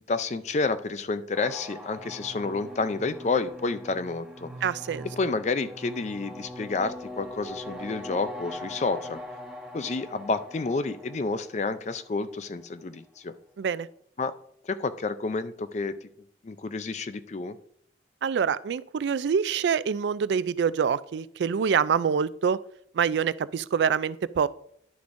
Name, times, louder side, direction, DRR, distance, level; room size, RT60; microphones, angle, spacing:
voice 1, 0.1-4.5 5.2-9.2 9.7-13.3 14.2-14.3 14.6-16.0 16.4-17.6, left 3 dB, 40° left, 12 dB, 0.4 m, -30 dB
sound 1, 1.3-12.5, left 1 dB, 5° right, 1.0 m, -42 dB
voice 2, 4.6-5.1 13.6-13.9 18.2-22.6 22.9-24.5, right 6 dB, 80° right, 16 dB, 0.3 m, -25 dB
11.0 x 6.9 x 2.6 m, 0.66 s
head